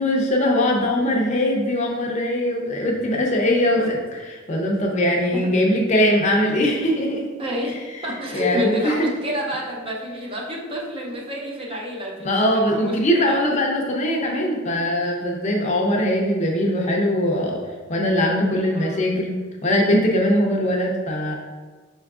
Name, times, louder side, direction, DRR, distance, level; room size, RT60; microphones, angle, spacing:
voice 1, 0.0-4.0 4.5-7.3 8.3-9.1 12.2-17.6 17.9-19.4 19.6-21.3, left 1 dB, 35° left, 0 dB, 0.6 m, -21 dB
voice 2, 7.4-7.8 8.0-12.3 12.7-13.5 18.7-19.0, left 1 dB, 25° right, -2 dB, 0.6 m, -29 dB
5.5 x 3.5 x 2.3 m, 1.3 s
head